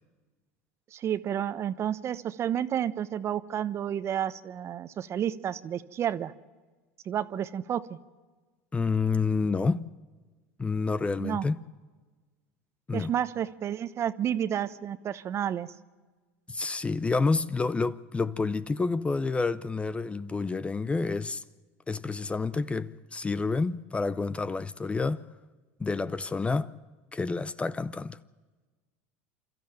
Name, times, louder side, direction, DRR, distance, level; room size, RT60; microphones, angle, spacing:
voice 1, 0.9-6.3 7.1-8.0 11.2-11.5 12.9-15.7, right 10 dB, 40° right, 1.0 m, -31 dB
voice 2, 8.7-9.9 10.6-11.6 12.9-13.1 16.5-21.4 21.9-25.2 25.8-26.7 27.1-28.2, left 4 dB, 15° left, 0.6 m, -29 dB
28.0 x 13.5 x 8.9 m
hypercardioid pair, 90°, 7 cm